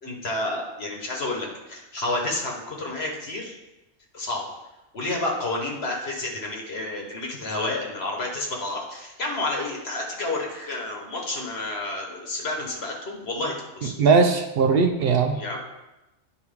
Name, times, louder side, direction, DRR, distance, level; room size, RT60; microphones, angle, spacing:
voice 1, 0.0-3.6 4.1-4.4 4.9-13.9 15.3-15.6, left 2 dB, 55° left, 0 dB, 1.4 m, -30 dB
voice 2, 14.0-15.4, right 5 dB, 60° right, 6 dB, 0.6 m, -19 dB
9.6 x 4.6 x 3.5 m, 1.0 s
omnidirectional pair, 1.3 m